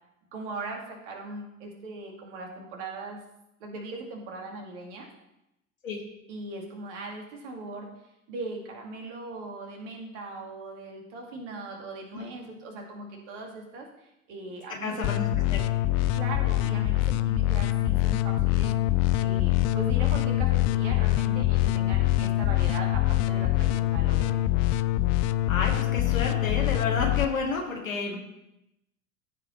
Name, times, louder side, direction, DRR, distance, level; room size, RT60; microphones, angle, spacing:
voice 1, 0.3-3.2 3.6-5.1 6.3-7.9 8.3-15.1 16.1-18.7 19.2-24.4, right 2 dB, 60° right, 1 dB, 2.4 m, -39 dB
voice 2, 14.8-15.6 25.5-28.2, left 4 dB, 80° left, -1 dB, 2.0 m, -30 dB
sound 1, 15.0-27.2, left 15 dB, 40° left, 0.5 m, -24 dB
14.5 x 5.0 x 4.4 m, 0.87 s
figure-of-eight pair, 75°, 40 cm